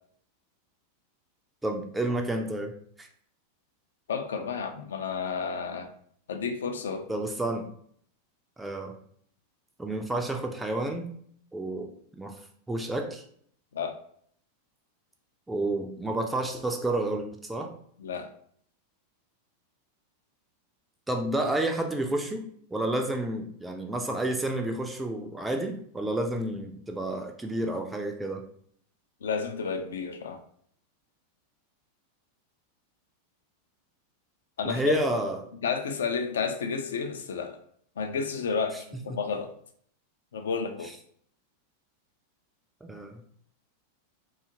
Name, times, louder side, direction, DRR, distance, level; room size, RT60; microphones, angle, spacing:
voice 1, 1.6-2.7 3.0-3.1 7.1-7.7 8.6-8.9 9.8-11.1 11.5-11.9 12.2-12.3 12.7-13.2 15.5-17.7 21.1-28.4 34.6-35.4 39.1-39.2 42.8-43.1, right 1 dB, 10° right, 3 dB, 0.3 m, -30 dB
voice 2, 4.1-5.9 6.3-7.0 13.7-14.0 18.0-18.3 29.2-30.4 34.6-34.8 35.6-37.6 38.0-39.5 40.3-40.9, left 5 dB, 65° left, 6 dB, 0.4 m, -31 dB
2.7 x 2.3 x 2.7 m, 0.62 s
figure-of-eight pair, 90°, 0 cm